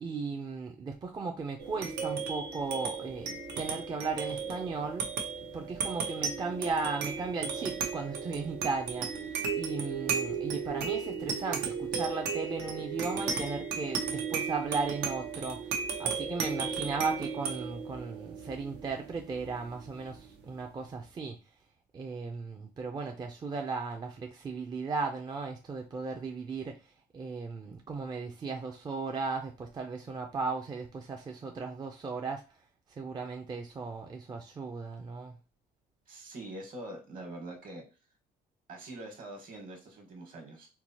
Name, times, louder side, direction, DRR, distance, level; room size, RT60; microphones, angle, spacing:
voice 1, 0.0-5.1 5.5-15.6 16.0-21.4 21.9-26.7 27.1-32.4 33.0-35.3, right 4 dB, 25° right, 3 dB, 0.5 m, -36 dB
sound 1, 1.6-20.5, right 5 dB, 85° right, 0.8 m, -35 dB
voice 2, 36.1-37.8 38.7-40.7, right 1 dB, 55° right, 2 dB, 1.3 m, -44 dB
4.5 x 2.0 x 2.8 m, 0.31 s
cardioid pair, 110°, 17 cm